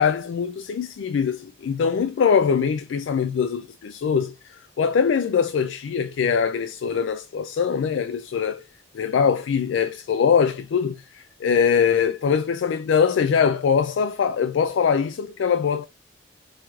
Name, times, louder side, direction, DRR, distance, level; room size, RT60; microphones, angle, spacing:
voice 1, 0.0-8.7 8.9-15.9, left 6 dB, 85° left, 0.3 m, -22 dB
4.7 x 3.0 x 2.3 m
head